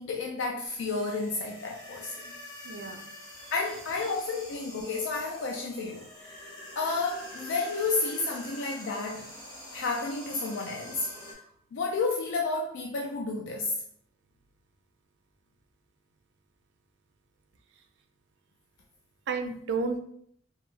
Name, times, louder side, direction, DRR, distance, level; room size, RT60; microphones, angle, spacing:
voice 1, 0.0-2.1 3.5-6.4 6.8-9.3 9.7-11.1 11.7-13.7, left 3 dB, 90° left, 0 dB, 0.4 m, -31 dB
sound 1, 0.7-11.3, left 1 dB, 20° left, 0.7 m, -45 dB
voice 2, 2.6-3.1 3.4-3.5 19.3-20.0, right 4 dB, 75° right, 6 dB, 0.4 m, -32 dB
2.6 x 2.3 x 3.0 m, 0.66 s
head